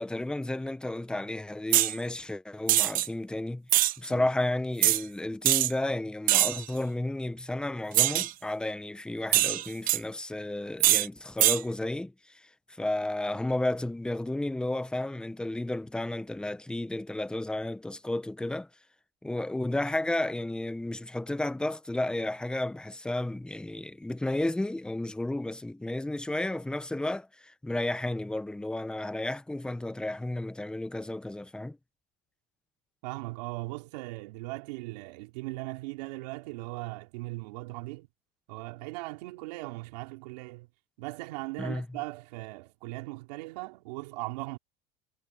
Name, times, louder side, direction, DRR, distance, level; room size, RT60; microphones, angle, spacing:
voice 1, 0.0-3.7 4.0-18.7 19.2-31.8 41.6-41.9, left 1 dB, 5° left, 0.9 m, -32 dB
sound 1, 1.7-1.9 2.7-3.1 3.7-3.9 4.8-5.0 5.4-5.7 6.3-6.6 7.9-8.3 9.3-10.0 10.8-11.1 11.4-11.6, right 16 dB, 45° right, 0.5 m, -23 dB
voice 2, 33.0-38.1 38.5-40.7 41.0-44.6, right 22 dB, 85° right, 4.6 m, -39 dB
supercardioid pair, 135°, 20 cm